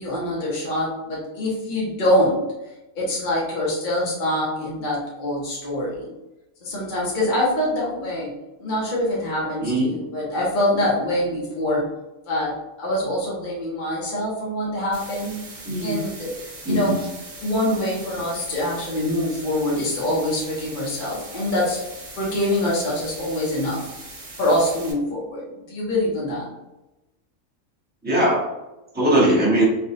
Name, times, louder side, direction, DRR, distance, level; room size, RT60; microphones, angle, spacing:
voice 1, 0.0-2.4 2.9-6.1 6.6-8.3 8.6-11.9 12.3-15.4 15.8-16.3 16.7-17.0 17.4-21.8 22.2-23.8 24.4-26.5, left 1 dB, 40° left, -6 dB, 0.8 m, -24 dB
sound 1, 14.9-24.9, right 2 dB, 60° right, 1.2 m, -40 dB
voice 2, 15.6-16.0 16.6-17.0 28.0-28.4 28.9-29.6, right 1 dB, 10° right, -7 dB, 0.9 m, -20 dB
3.4 x 2.3 x 2.6 m, 0.99 s
omnidirectional pair, 1.5 m